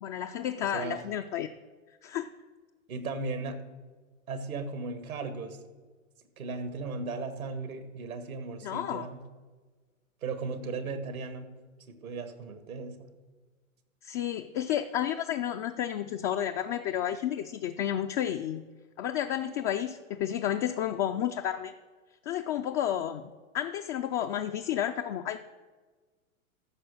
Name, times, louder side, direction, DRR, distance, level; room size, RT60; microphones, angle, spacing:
voice 1, 0.0-1.5 2.0-2.3 8.6-9.1 14.0-18.6 19.0-21.7 22.2-23.2 23.5-25.4, left 10 dB, 30° left, 6 dB, 0.3 m, -31 dB
voice 2, 2.9-3.6 4.3-5.6 6.4-9.2 10.2-11.5 11.9-13.1, right 3 dB, 85° right, 8 dB, 1.7 m, -36 dB
14.0 x 6.0 x 6.3 m, 1.4 s
hypercardioid pair, 110°, 41 cm